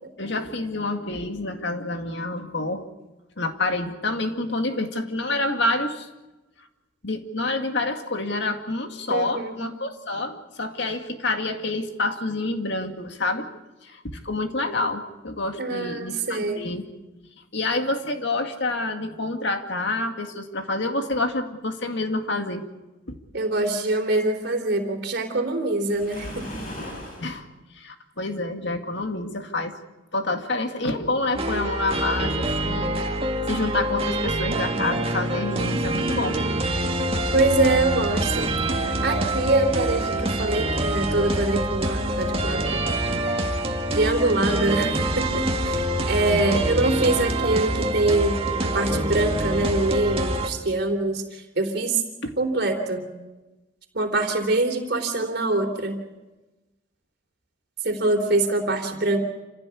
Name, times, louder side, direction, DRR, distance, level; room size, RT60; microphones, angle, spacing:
voice 1, 0.2-2.8 3.4-6.1 7.0-13.5 13.8-16.9 17.5-22.6 23.1-23.2 27.2-27.5 27.7-29.8 30.1-33.1 33.5-36.4 46.3-46.6 52.2-52.3, left 2 dB, 60° left, 5 dB, 2.2 m, -28 dB
voice 2, 9.1-9.5 15.6-16.6 23.3-26.4 37.3-42.9 43.9-52.0 52.4-53.0 53.9-56.0 57.8-59.2, right 2 dB, 55° right, 4 dB, 3.6 m, -24 dB
Waves surf, 25.8-27.3, left 1 dB, 45° left, 7.3 m, -37 dB
sound 1, 31.3-50.5, right 1 dB, 30° right, 1.9 m, -25 dB
27.5 x 16.0 x 8.4 m, 1.1 s
head